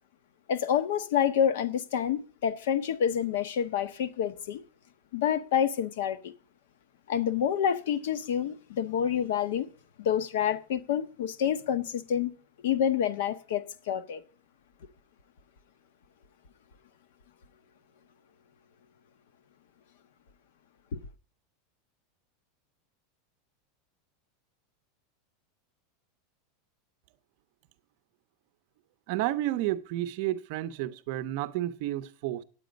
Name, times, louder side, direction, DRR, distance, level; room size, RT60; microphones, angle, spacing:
voice 1, 0.5-4.6 5.1-6.3 7.1-9.7 10.0-12.3 12.6-14.2 20.9-21.0, left 9 dB, 70° left, 0.8 m, -28 dB
voice 2, 29.1-32.4, right 14 dB, 45° right, 0.6 m, -31 dB
9.3 x 8.4 x 5.1 m
supercardioid pair, 180°, 0 cm